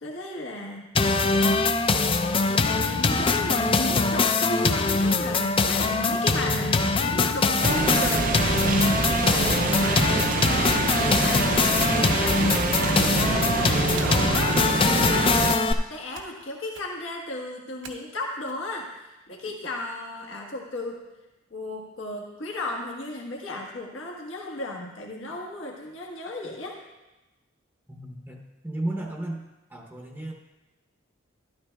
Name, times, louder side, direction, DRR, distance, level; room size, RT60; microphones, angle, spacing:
voice 1, 0.0-0.8 2.5-21.0 21.5-26.8, left 1 dB, 80° left, -1 dB, 1.4 m, -35 dB
sound 1, 0.9-15.7, left 3 dB, 25° left, 0.4 m, -23 dB
sound 2, 7.6-15.5, right 4 dB, 45° right, 0.4 m, -26 dB
sound 3, 12.9-13.5 14.0-14.6 16.1-16.5 16.7-17.1 17.8-18.5, right 5 dB, 70° right, 1.1 m, -44 dB
voice 2, 27.9-29.4 29.7-30.3, right 1 dB, 10° right, 0 dB, 0.7 m, -34 dB
13.0 x 12.0 x 2.3 m, 1.1 s
head